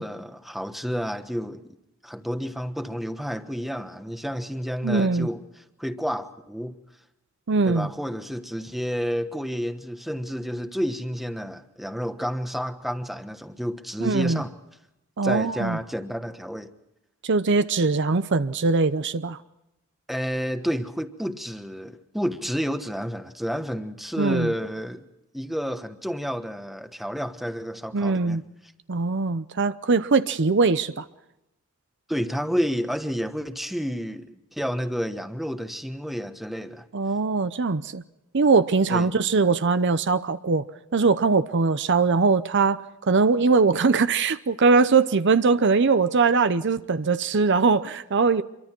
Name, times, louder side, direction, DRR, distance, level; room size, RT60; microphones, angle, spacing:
voice 1, 0.0-1.6 2.0-6.8 7.6-14.5 15.2-16.7 20.1-25.1 25.3-28.4 32.1-36.9 38.9-39.2, equal, ahead, 1.2 m, -30 dB
voice 2, 4.8-5.3 7.5-7.9 14.0-14.4 15.2-15.8 17.2-19.4 24.2-24.5 27.9-28.4 28.9-31.0 36.9-38.0 38.3-40.7 40.9-48.4, right 4 dB, 55° right, 0.7 m, -21 dB
26.5 x 23.5 x 4.5 m
head